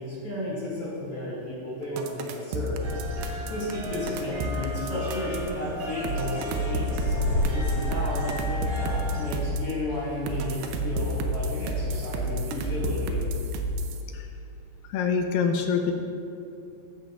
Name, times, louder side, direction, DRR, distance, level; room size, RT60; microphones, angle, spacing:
voice 1, 0.0-2.8 3.5-13.2, left 1 dB, 45° left, -9 dB, 2.8 m, -33 dB
sound 1, 2.0-5.5 6.0-9.7 10.3-14.0, right 1 dB, 85° right, 2.5 m, -30 dB
sound 2, 2.8-9.3, equal, 65° right, 1.2 m, -36 dB
sound 3, 5.9-10.7 10.9-12.1, left 1 dB, 60° left, 2.0 m, -33 dB
voice 2, 14.9-15.9, left 6 dB, 80° left, 4 dB, 2.3 m, -25 dB
14.5 x 11.5 x 2.5 m, 2.7 s
omnidirectional pair, 4.2 m